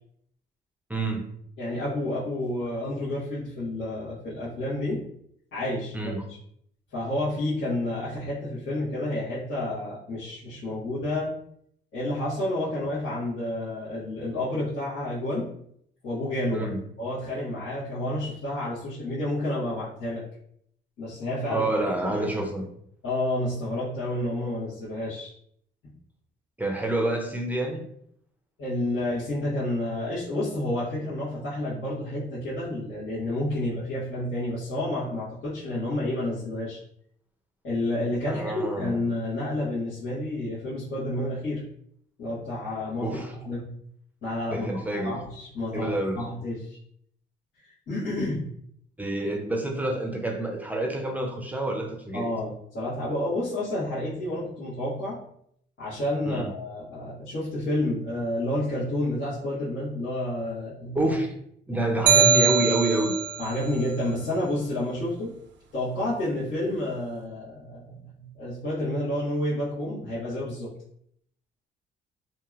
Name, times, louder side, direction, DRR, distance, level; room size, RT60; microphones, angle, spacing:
voice 1, 0.9-1.2 5.9-6.2 16.5-16.8 21.5-22.6 26.6-27.9 38.3-39.0 43.0-43.4 44.5-45.2 45.7-46.3 49.0-52.3 56.3-56.5 60.9-61.3 61.7-63.2, right 1 dB, 10° right, 2 dB, 0.5 m, -28 dB
voice 2, 1.6-5.0 5.5-6.1 6.9-11.3 11.9-15.5 16.0-16.7 17.0-20.3 21.0-21.7 22.0-22.4 23.0-25.3 25.8-25.9 28.6-36.8 37.6-41.6 42.2-43.2 43.4-43.7 44.2-46.7 47.9-48.5 52.1-55.2 55.8-61.1 63.4-65.4 65.7-70.7, left 1 dB, 80° left, -13 dB, 1.4 m, -30 dB
sound 1, 62.1-63.4, right 6 dB, 65° right, 0.4 m, -21 dB
2.9 x 2.6 x 2.4 m, 0.68 s
cardioid pair, 90°, 20 cm